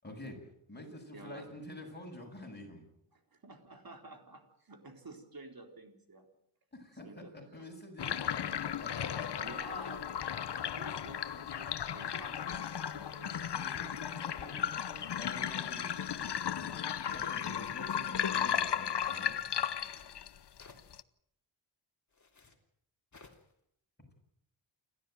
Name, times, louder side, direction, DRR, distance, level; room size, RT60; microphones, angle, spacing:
voice 1, 0.0-2.9 6.7-9.4 13.5-19.4, left 1 dB, 20° left, 2 dB, 7.6 m, -48 dB
voice 2, 1.1-1.5 3.1-6.3 7.0-7.7 9.4-13.5, right 2 dB, 45° right, 5 dB, 4.2 m, -51 dB
sound 1, 8.0-21.0, left 9 dB, 55° left, 0.9 m, -35 dB
sound 2, 17.9-18.4 19.6-20.1 20.6-20.9 22.1-22.6 23.1-23.5, left 3 dB, 35° left, 3.3 m, -57 dB
28.5 x 13.0 x 9.3 m, 0.76 s
wide cardioid pair, 90°, 49 cm